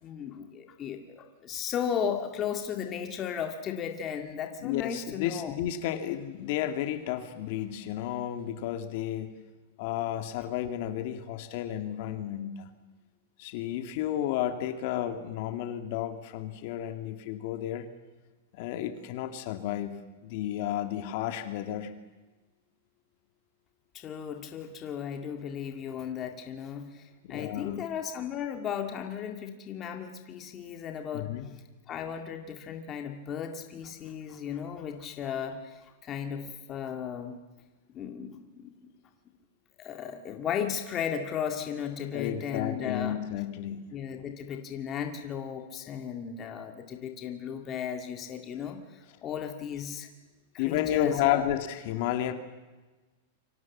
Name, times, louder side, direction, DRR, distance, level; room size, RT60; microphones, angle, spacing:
voice 1, 0.0-5.5 23.9-27.0 27.3-31.3 31.9-37.4 37.9-38.9 39.8-43.2 43.9-50.1 50.5-51.5, left 8 dB, 20° left, 4 dB, 2.0 m, -35 dB
voice 2, 4.6-9.4 9.8-12.7 13.4-17.9 18.5-19.9 20.2-22.0 27.2-27.8 31.1-31.5 42.1-43.9 50.6-52.3, left 11 dB, 45° left, 8 dB, 2.1 m, -32 dB
28.5 x 24.5 x 7.3 m, 1.2 s
supercardioid pair, 165°, 0 cm